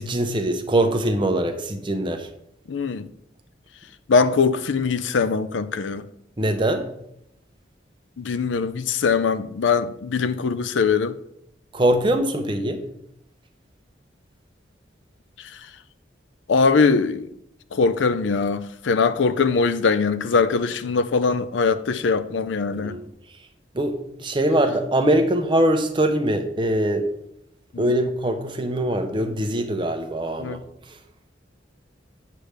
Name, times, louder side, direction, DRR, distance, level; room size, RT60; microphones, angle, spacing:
voice 1, 0.0-2.3 6.4-6.9 11.7-12.8 22.7-23.1 23.7-27.1 27.8-30.6, right 1 dB, 25° right, 0.8 m, -22 dB
voice 2, 2.7-3.1 4.1-6.0 8.2-11.1 16.5-17.3 17.7-23.0 27.7-28.0 30.4-30.6, left 4 dB, 80° left, 0.5 m, -21 dB
8.5 x 3.4 x 6.5 m
head